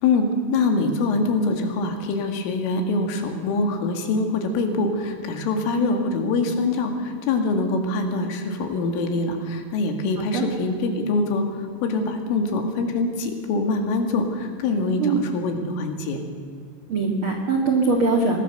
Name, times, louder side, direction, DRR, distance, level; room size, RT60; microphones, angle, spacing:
voice 1, 0.0-16.2, left 3 dB, 85° left, 5 dB, 4.7 m, -24 dB
voice 2, 10.2-10.5 15.0-15.2 16.9-18.4, right 3 dB, 60° right, 2 dB, 1.3 m, -22 dB
24.0 x 19.5 x 6.8 m, 2.2 s
omnidirectional pair, 5.7 m